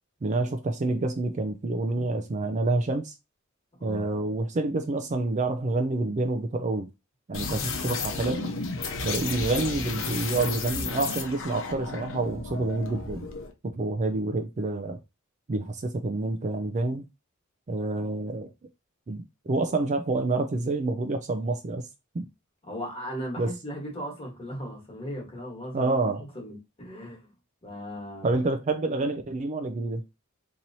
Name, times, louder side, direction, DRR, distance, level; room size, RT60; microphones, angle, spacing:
voice 1, 0.2-3.1 3.8-6.9 7.3-8.5 9.0-13.2 13.6-15.0 15.5-17.1 17.7-18.5 19.1-21.8 22.1-22.2 23.4-23.5 25.7-26.2 28.2-30.0, right 2 dB, 35° right, 0.4 m, -28 dB
sound 1, 7.3-13.5, left 4 dB, 60° left, 0.8 m, -33 dB
voice 2, 9.1-9.7 12.5-12.6 22.7-27.3 27.6-28.3, equal, 25° left, 1.4 m, -38 dB
4.3 x 3.0 x 2.7 m
head